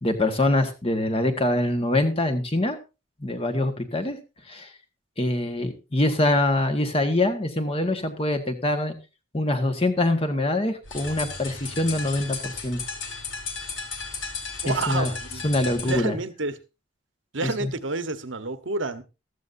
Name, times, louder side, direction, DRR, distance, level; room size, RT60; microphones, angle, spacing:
voice 1, 0.0-2.8 3.2-4.2 4.5-4.7 5.2-8.9 9.3-12.8 14.6-15.1 15.4-16.2 17.4-17.7, left 1 dB, 30° left, 6 dB, 1.5 m, -24 dB
sound 1, 10.8-16.0, left 4 dB, 75° left, 3.4 m, -35 dB
voice 2, 14.6-15.4 15.8-16.5 17.3-19.0, right 3 dB, 70° right, 10 dB, 1.2 m, -29 dB
14.5 x 13.5 x 2.7 m, 0.28 s
head